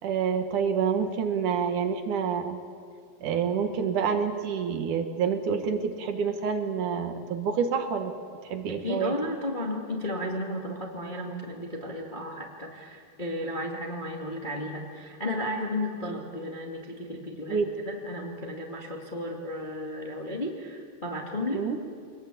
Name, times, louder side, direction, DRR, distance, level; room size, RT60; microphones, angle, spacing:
voice 1, 0.0-2.6 3.2-8.2 8.4-9.1 17.5-17.7 21.5-21.8, right 6 dB, 60° right, 7 dB, 2.6 m, -28 dB
voice 2, 8.7-21.8, left 1 dB, 20° left, 0 dB, 1.6 m, -34 dB
25.0 x 20.5 x 8.6 m, 2.3 s
omnidirectional pair, 4.7 m